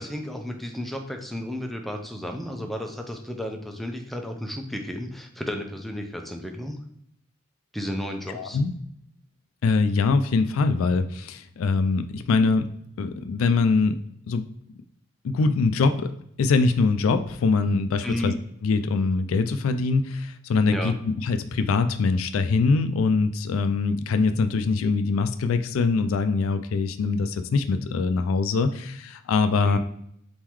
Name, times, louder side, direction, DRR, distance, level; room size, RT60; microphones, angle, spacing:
voice 1, 0.0-6.8 7.7-8.6 18.0-18.4 20.7-20.9 29.6-29.8, equal, ahead, 3 dB, 0.5 m, -33 dB
voice 2, 8.3-8.7 9.6-12.7 13.0-14.0 14.3-14.5 15.2-18.3 18.6-29.8, left 4 dB, 90° left, 10 dB, 0.4 m, -23 dB
4.3 x 3.7 x 3.0 m, 0.74 s
head